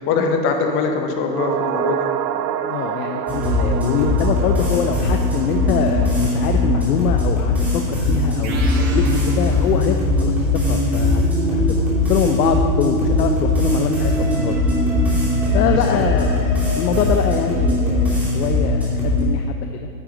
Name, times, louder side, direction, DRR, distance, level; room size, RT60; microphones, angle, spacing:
voice 1, 0.1-2.1 6.9-7.2 9.1-9.2 13.5-13.7, left 4 dB, 25° left, 4 dB, 0.7 m, -22 dB
sound 1, 1.3-9.8 10.0-10.1, right 9 dB, 85° right, 0.6 m, -29 dB
voice 2, 2.6-14.6 15.5-16.3 16.7-19.9, left 8 dB, 65° left, 5 dB, 0.7 m, -24 dB
sound 2, 3.3-19.2, left 1 dB, 5° right, 2.5 m, -20 dB
sound 3, 8.4-10.3, right 4 dB, 50° right, 1.5 m, -36 dB
10.0 x 7.4 x 3.9 m, 2.2 s
hypercardioid pair, 140°, 50 cm